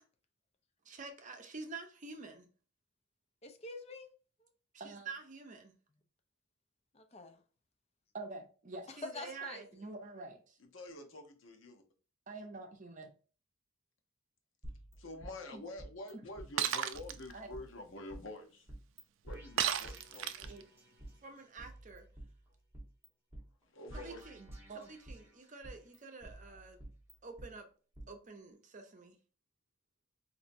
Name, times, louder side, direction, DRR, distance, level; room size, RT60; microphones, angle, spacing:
voice 1, 0.9-2.5 4.7-5.7 8.1-10.6 12.3-13.1 15.5-15.6 16.1-16.2 17.3-17.5 20.4-20.6 21.2-22.1 23.9-26.8 27.2-27.7 28.1-29.2, right 3 dB, 40° right, 0.6 m, -47 dB
voice 2, 3.4-4.1 4.4-4.5 6.9-7.4 8.9-9.9, left 3 dB, 30° left, 0.5 m, -47 dB
voice 3, 10.6-11.8 15.0-18.7 19.2-20.5 23.7-24.2, left 2 dB, 90° left, 0.8 m, -48 dB
sound 1, 14.6-16.1 16.4-16.5 16.9-18.2 18.7-19.0 19.3-21.1 21.6-23.1 23.3-23.4 23.9-25.3 25.6-27.5 28.0-28.1, right 1 dB, 15° right, 1.2 m, -50 dB
Shatter, 16.6-17.2 19.6-20.6, right 9 dB, 75° right, 0.3 m, -33 dB
4.3 x 2.6 x 2.6 m
head